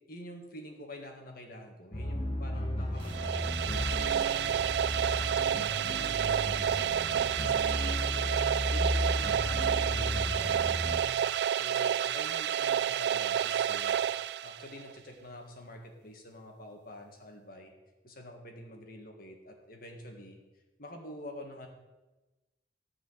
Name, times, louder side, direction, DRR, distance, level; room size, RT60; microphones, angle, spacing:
voice 1, 0.1-4.6 5.0-8.3 8.7-11.2 11.5-14.0 14.4-17.7 18.0-20.4 20.8-21.7, left 1 dB, 50° left, 3 dB, 1.7 m, -47 dB
sound 1, 1.9-11.0, left 1 dB, 30° left, 1.1 m, -34 dB
sound 2, 3.0-14.9, right 9 dB, 60° right, 0.3 m, -30 dB
12.5 x 4.9 x 8.0 m, 1.1 s
head